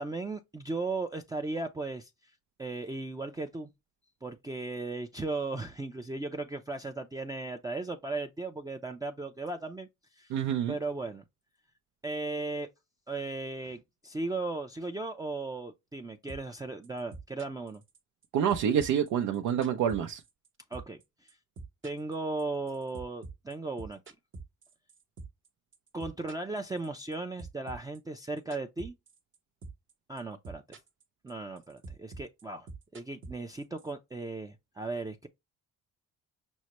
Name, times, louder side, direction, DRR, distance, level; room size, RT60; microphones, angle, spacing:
voice 1, 0.0-2.3 2.6-3.7 4.2-9.9 10.2-10.4 10.7-11.2 12.0-12.7 13.1-17.8 20.7-21.4 21.8-24.0 25.9-28.9 30.1-30.6 31.2-32.7 32.9-35.3, right 3 dB, 10° right, 0.4 m, -36 dB
voice 2, 10.3-10.8 18.3-20.2, right 9 dB, 80° right, 0.6 m, -27 dB
sound 1, 16.3-16.6 16.8-18.2 18.5-20.5 20.7-21.0 21.3-25.5 25.7-27.1 27.4-29.4 29.6-29.9 30.2-31.0 31.3-33.9, right 3 dB, 40° right, 0.9 m, -45 dB
6.2 x 2.1 x 2.9 m
cardioid pair, 90°, 30 cm